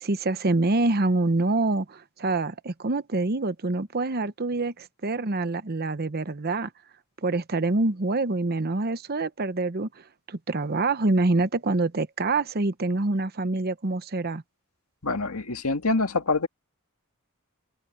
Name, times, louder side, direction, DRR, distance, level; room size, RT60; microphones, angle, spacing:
voice 1, 0.0-6.7 7.2-14.4, right 2 dB, 45° right, 0.9 m, -26 dB
voice 2, 15.0-16.5, left 3 dB, 85° left, 1.8 m, -25 dB
open air
head